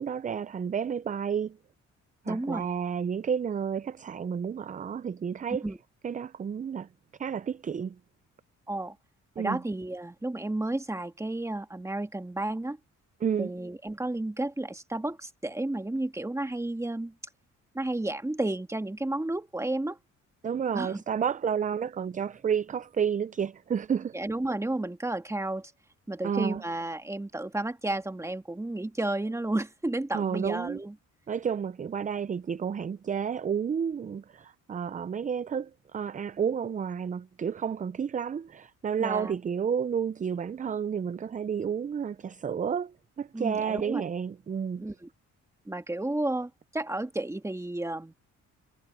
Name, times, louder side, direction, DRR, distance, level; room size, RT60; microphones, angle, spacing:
voice 1, 0.0-1.6 2.2-5.7 6.0-6.9 7.2-8.0 9.4-9.6 13.2-13.5 20.4-24.2 26.2-26.6 30.1-30.8 31.3-44.8, right 7 dB, 25° right, 0.5 m, -31 dB
voice 2, 2.3-2.7 5.6-5.8 8.7-9.0 9.4-12.8 13.4-17.1 17.7-20.0 20.7-21.0 24.1-25.7 26.1-31.0 39.0-39.4 43.3-44.1 44.8-45.1 45.7-48.1, right 2 dB, 10° right, 1.7 m, -32 dB
cardioid pair, 90°, 30 cm